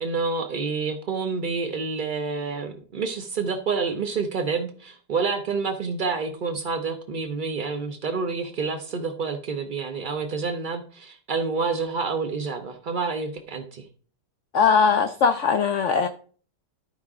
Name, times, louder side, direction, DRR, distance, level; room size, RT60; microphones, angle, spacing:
voice 1, 0.0-13.9, right 4 dB, 85° right, 0.4 m, -28 dB
voice 2, 14.5-16.1, left 6 dB, 85° left, 0.6 m, -20 dB
12.5 x 4.8 x 3.6 m
omnidirectional pair, 1.9 m